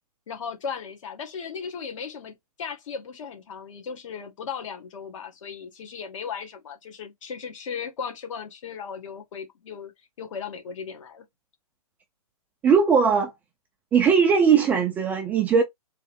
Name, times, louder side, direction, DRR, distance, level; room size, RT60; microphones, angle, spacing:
voice 1, 0.3-9.9 10.2-11.2, left 6 dB, 55° left, 1.8 m, -36 dB
voice 2, 12.6-13.3 13.9-15.6, right 6 dB, 10° right, 0.3 m, -19 dB
3.7 x 3.1 x 3.5 m
hypercardioid pair, 145°, 19 cm